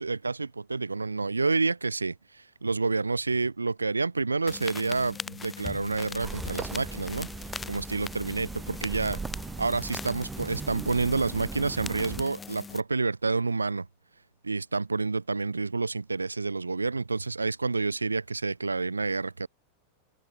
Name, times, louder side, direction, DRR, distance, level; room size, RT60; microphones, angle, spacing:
voice 1, 0.0-7.3 7.7-9.2 9.6-13.9 14.4-19.5, right 3 dB, 80° right, 1.5 m, -29 dB
sound 1, 4.5-12.8, left 5 dB, 15° left, 4.1 m, -41 dB
sound 2, 6.2-12.2, right 5 dB, 15° right, 1.9 m, -39 dB
open air
figure-of-eight pair, 90°, 0 cm